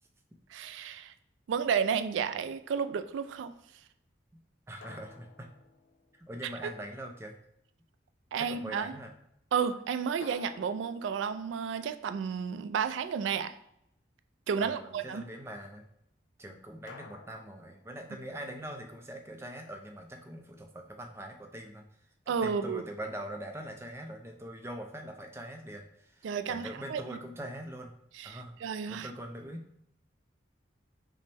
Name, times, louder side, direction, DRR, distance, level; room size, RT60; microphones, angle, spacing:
voice 1, 0.5-1.1 1.5-3.5 6.6-6.7 8.3-9.0 9.5-13.6 14.5-15.2 22.3-22.8 26.2-27.0 28.2-29.1, right 6 dB, 85° right, 10 dB, 0.3 m, -32 dB
sound 1, 2.2-2.8 4.8-6.6 10.2-12.8 16.9-18.5, left 5 dB, 75° left, 0.4 m, -53 dB
voice 2, 4.7-5.5 6.1-7.3 8.4-9.1 14.6-15.9 16.4-21.8 22.3-27.9 28.2-28.6 28.9-29.8, right 1 dB, 15° right, 3 dB, 0.4 m, -43 dB
5.1 x 2.1 x 3.3 m, 0.74 s
head